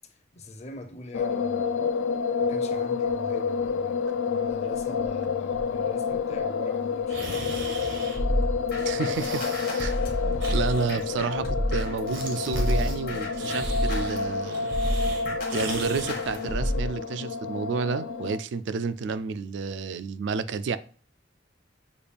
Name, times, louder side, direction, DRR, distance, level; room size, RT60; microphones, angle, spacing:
voice 1, 0.0-1.9 2.4-7.6, left 2 dB, 35° left, 0.6 m, -42 dB
sound 1, 1.1-18.4, left 5 dB, 85° left, 0.4 m, -29 dB
sound 2, 7.1-8.5 8.8-9.9 10.4-11.8 12.1-13.0 13.3-16.1, right 3 dB, 90° right, 1.1 m, -39 dB
sound 3, 8.2-12.1 12.5-16.9, left 1 dB, 55° left, 1.1 m, -29 dB
voice 2, 8.8-9.4 9.8-10.0 10.5-14.7 15.5-20.8, right 5 dB, 65° right, 0.3 m, -30 dB
6.8 x 2.3 x 3.3 m
head